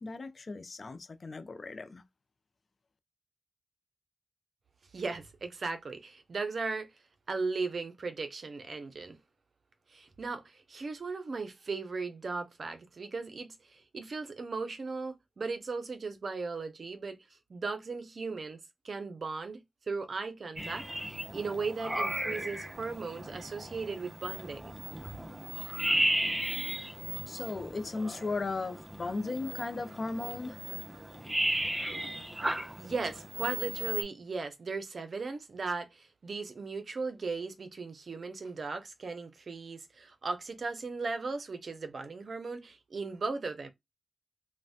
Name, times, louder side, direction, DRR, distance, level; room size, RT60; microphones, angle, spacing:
voice 1, 0.0-2.0 27.3-30.6, left 3 dB, 60° left, 0.4 m, -36 dB
voice 2, 4.9-6.9 7.3-9.2 9.9-17.2 17.5-18.6 18.8-24.7 32.8-43.7, right 4 dB, 70° right, 0.5 m, -37 dB
sound 1, 20.6-34.0, right 1 dB, 25° right, 0.7 m, -35 dB
3.1 x 2.1 x 2.7 m
cardioid pair, 55°, 0 cm